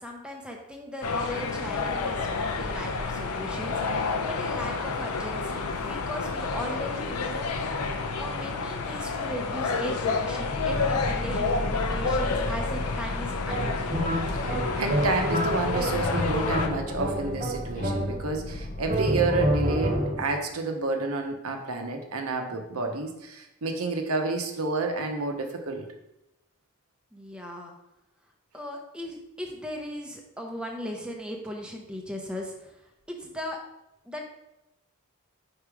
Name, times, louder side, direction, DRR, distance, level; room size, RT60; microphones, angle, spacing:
voice 1, 0.0-7.5 8.2-14.0 27.1-27.8 28.5-33.6 34.0-34.2, equal, 5° right, 0 dB, 0.7 m, -38 dB
sound 1, 1.0-16.7, left 4 dB, 90° left, 0.6 m, -30 dB
Boat Water vehicle, 10.3-19.2, left 2 dB, 35° left, 0.5 m, -34 dB
sound 2, 13.5-18.4 18.9-20.4, right 1 dB, 35° right, 0.9 m, -29 dB
voice 2, 14.8-25.9, right 3 dB, 80° right, 4 dB, 0.9 m, -29 dB
4.9 x 4.3 x 4.9 m, 0.90 s
head